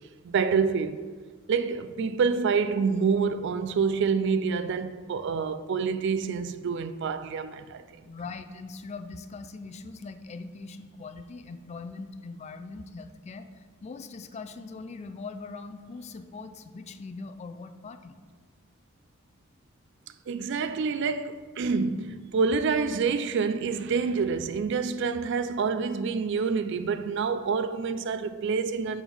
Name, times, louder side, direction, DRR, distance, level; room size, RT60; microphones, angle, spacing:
voice 1, 0.2-1.0 1.5-8.0 20.3-29.0, right 5 dB, 60° right, 0.4 m, -27 dB
voice 2, 8.0-18.2, left 4 dB, 35° left, 0.4 m, -41 dB
7.0 x 3.6 x 6.0 m
head